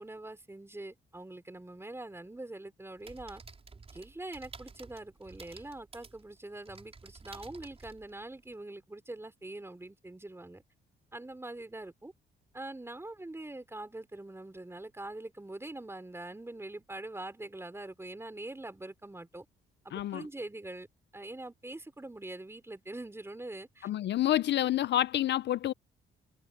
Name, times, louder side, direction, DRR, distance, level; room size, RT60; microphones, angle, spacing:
voice 1, 0.0-3.4 3.9-10.6 11.1-12.1 12.5-19.5 19.8-20.9 21.1-23.9, right 2 dB, 10° right, 4.2 m, -44 dB
sound 1, 3.0-8.6, right 4 dB, 30° right, 4.9 m, -52 dB
voice 2, 19.9-20.3 23.8-25.7, left 13 dB, 60° left, 0.5 m, -28 dB
cardioid pair, 90°, 20 cm